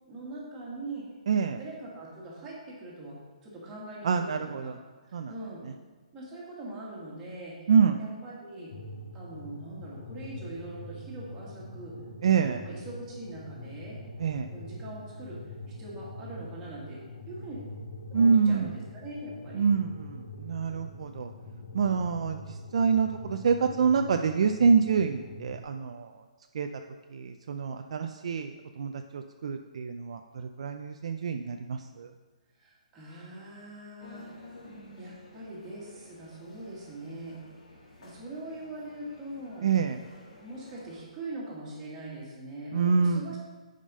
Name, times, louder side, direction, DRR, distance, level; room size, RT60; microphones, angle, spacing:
voice 1, 0.1-1.1 1.6-4.7 5.1-5.6 6.1-7.7 8.0-8.7 9.1-11.9 12.4-14.0 14.5-15.4 15.8-17.6 18.0-19.6 32.5-34.4 34.9-37.4 38.0-39.7 40.4-43.4, right 2 dB, 10° right, -6 dB, 1.7 m, -42 dB
voice 2, 1.3-1.6 4.0-4.8 5.1-5.3 7.7-8.0 12.2-12.6 14.2-14.5 18.1-18.7 19.5-21.3 21.7-26.2 26.5-26.7 27.1-32.1 39.6-40.0 42.7-43.3, right 6 dB, 50° right, 6 dB, 0.4 m, -26 dB
sound 1, 8.7-25.6, left 1 dB, 75° left, 1.8 m, -44 dB
sound 2, 34.0-41.0, left 1 dB, 60° left, 2.6 m, -52 dB
8.6 x 5.1 x 5.4 m, 1.3 s
hypercardioid pair, 175°, 4 cm